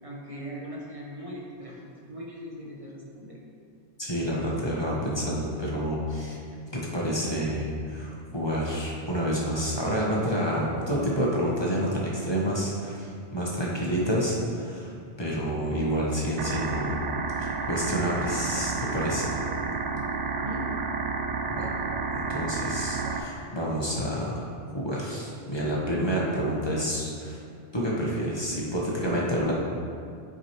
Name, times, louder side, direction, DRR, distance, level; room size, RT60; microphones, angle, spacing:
voice 1, 0.0-3.4 13.6-13.8 20.4-20.7, equal, 30° right, -5 dB, 1.1 m, -40 dB
voice 2, 4.0-6.4 6.7-14.9 15.2-17.0 17.4-19.3 21.5-21.7 22.1-24.5 24.7-27.4 27.7-29.5, equal, 25° left, -5 dB, 1.1 m, -28 dB
sound 1, 16.4-23.2, right 4 dB, 80° right, 0.9 m, -30 dB
9.6 x 4.8 x 3.0 m, 2.4 s
omnidirectional pair, 1.2 m